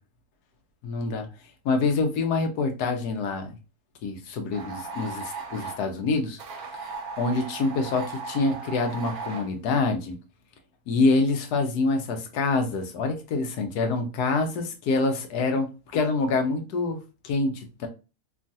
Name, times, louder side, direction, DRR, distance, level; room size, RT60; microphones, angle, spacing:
voice 1, 0.8-1.3 1.6-3.6 4.0-6.4 7.2-10.2 10.9-15.7 15.9-17.0 17.2-17.9, left 3 dB, 80° left, 5 dB, 1.2 m, -26 dB
sound 1, 4.5-5.8 6.4-9.5, right 4 dB, 70° right, 1.1 m, -37 dB
3.1 x 2.4 x 2.6 m, 0.30 s
omnidirectional pair, 1.7 m